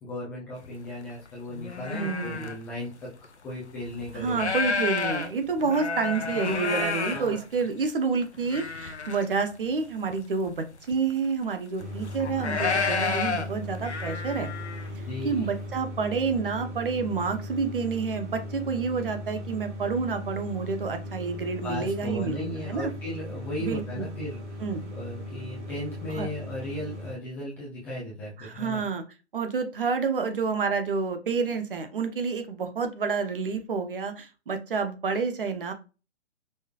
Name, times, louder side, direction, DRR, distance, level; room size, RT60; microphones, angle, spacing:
voice 1, 0.0-4.6 7.1-7.4 15.1-15.5 21.6-24.6 24.9-28.8, left 1 dB, 5° left, -7 dB, 0.5 m, -36 dB
sound 1, 0.7-0.8 1.2-2.6 3.2-3.3 3.8-7.9 8.3-9.3 9.5-9.6 10.1-10.2 10.5-11.1 11.8-14.9, left 5 dB, 70° left, 0.8 m, -30 dB
voice 2, 1.9-2.5 4.1-14.5 15.0-22.9 23.6-24.1 24.6-24.8 26.1-26.3 28.4-29.0 29.3-35.7, right 5 dB, 50° right, 7 dB, 1.0 m, -29 dB
sound 2, 11.8-27.1, left 1 dB, 75° right, 1.5 m, -38 dB
5.4 x 3.2 x 2.4 m, 0.31 s
figure-of-eight pair, 130°, 35 cm